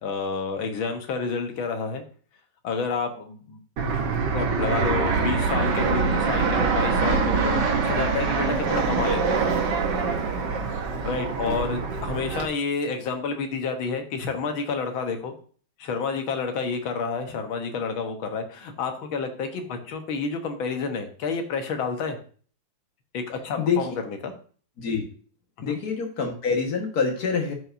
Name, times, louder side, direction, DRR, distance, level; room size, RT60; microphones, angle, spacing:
voice 1, 0.0-2.0 2.6-3.6 4.3-9.5 11.0-15.3 15.8-22.2 23.1-23.8 24.2-24.3 25.6-25.8, left 5 dB, 90° left, 6 dB, 1.9 m, -29 dB
Fixed-wing aircraft airplane, 3.8-12.5, right 4 dB, 65° right, 1.7 m, -24 dB
voice 2, 23.6-23.9 24.8-25.1 25.6-27.5, left 5 dB, 55° left, 3 dB, 1.9 m, -26 dB
13.0 x 4.9 x 2.6 m, 0.42 s
omnidirectional pair, 2.1 m